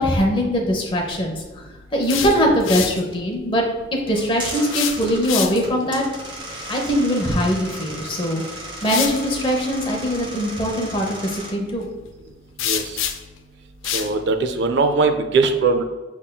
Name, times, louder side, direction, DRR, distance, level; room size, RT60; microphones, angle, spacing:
voice 1, 0.0-1.4 1.9-3.6 4.1-6.0 6.7-8.4 8.8-11.9, equal, 25° left, 1 dB, 0.8 m, -21 dB
sound 1, 1.8-3.0 4.6-5.8 7.9-8.0 8.8-9.2 12.6-13.4 13.8-14.1, left 9 dB, 75° left, 0.5 m, -26 dB
sound 2, 4.1-11.5, right 1 dB, 25° right, 0.8 m, -35 dB
voice 2, 13.9-15.8, right 4 dB, 60° right, 7 dB, 0.4 m, -20 dB
6.4 x 3.6 x 2.2 m, 1.2 s
head